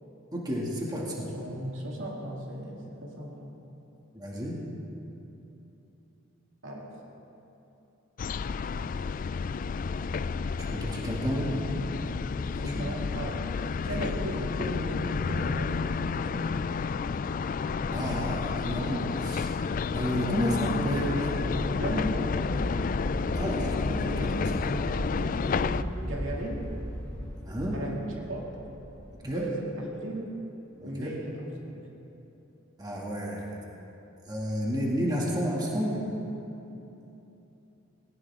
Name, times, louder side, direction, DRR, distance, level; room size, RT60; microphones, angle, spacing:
voice 1, 0.3-1.3 4.1-4.6 10.7-11.6 12.6-12.9 17.9-19.5 19.9-21.4 23.4-24.8 27.5-27.8 29.2-29.5 30.8-31.1 32.8-33.6 34.3-36.0, equal, 20° right, -3 dB, 2.3 m, -31 dB
voice 2, 0.9-3.6 6.6-7.0 12.5-13.5 13.8-16.8 21.8-22.3 24.9-26.7 27.7-28.5 29.2-30.4 30.8-31.9, right 1 dB, 70° right, -2 dB, 2.5 m, -37 dB
sound 1, 8.2-25.8, left 5 dB, 45° left, 0.3 m, -31 dB
sound 2, 20.1-29.2, equal, 10° left, 3.0 m, -37 dB
19.0 x 19.0 x 3.7 m, 3.0 s
head